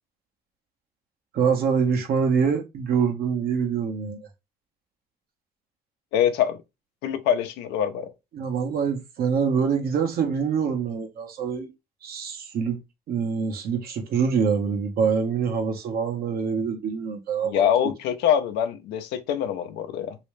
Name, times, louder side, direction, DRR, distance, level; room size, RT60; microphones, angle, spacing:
voice 1, 1.3-4.3 8.3-11.7 12.0-12.8 13.1-17.6, right 6 dB, 65° right, 1.1 m, -25 dB
voice 2, 6.1-6.6 7.0-8.1 17.4-20.2, left 9 dB, 90° left, 0.7 m, -24 dB
3.2 x 3.1 x 3.1 m
cardioid pair, 110°, 17 cm